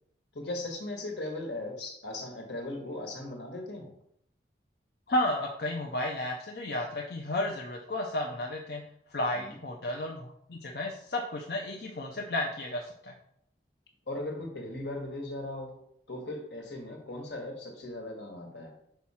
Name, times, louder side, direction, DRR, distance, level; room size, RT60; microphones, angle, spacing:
voice 1, 0.3-3.9 9.3-9.5 14.1-15.8 16.1-18.7, left 2 dB, 80° left, 2 dB, 1.5 m, -38 dB
voice 2, 5.1-8.8 9.1-13.1, left 1 dB, 60° left, 0 dB, 0.7 m, -32 dB
5.8 x 4.8 x 4.3 m, 0.73 s
head